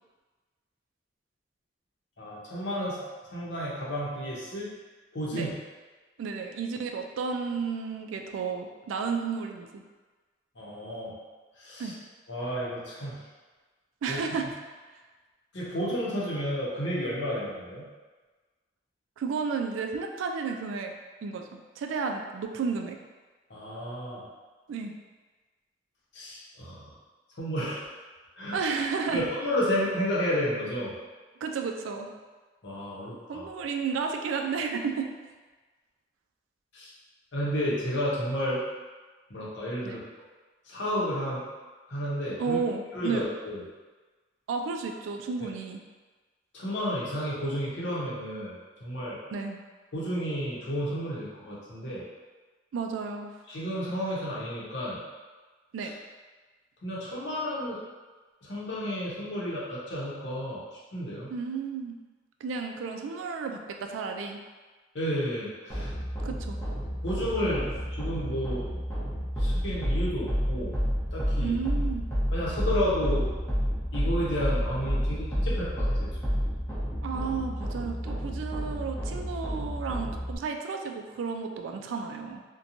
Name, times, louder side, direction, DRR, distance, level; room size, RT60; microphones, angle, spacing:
voice 1, 2.2-3.0 3.3-4.7 5.1-5.5 10.6-11.2 11.6-11.9 12.3-13.2 14.1-14.2 15.5-17.8 23.5-24.2 26.1-26.9 27.3-27.8 28.4-28.6 29.1-30.9 32.6-33.4 36.7-36.9 37.3-38.6 39.3-40.0 40.6-41.5 41.9-42.6 42.9-43.6 46.5-49.2 49.9-52.0 53.5-55.0 55.8-55.9 56.8-57.8 58.4-60.6 60.9-61.3 64.9-65.9 67.0-68.7 69.4-70.7 71.1-71.6 72.3-73.3 73.9-76.4, equal, 65° left, -6 dB, 0.7 m, -31 dB
voice 2, 6.2-9.8 11.8-12.0 14.0-14.5 19.2-20.9 21.2-23.0 24.7-24.9 28.5-29.2 31.4-32.1 33.3-35.1 39.8-40.0 42.4-43.3 44.5-45.8 49.3-49.6 52.7-53.3 55.7-55.9 61.3-62.0 62.4-64.4 66.2-66.6 71.4-72.1 77.0-82.4, right 5 dB, 85° right, 5 dB, 0.3 m, -32 dB
sound 1, 65.7-80.3, equal, 15° left, 0.6 m, -30 dB
2.8 x 2.2 x 2.6 m, 1.3 s
head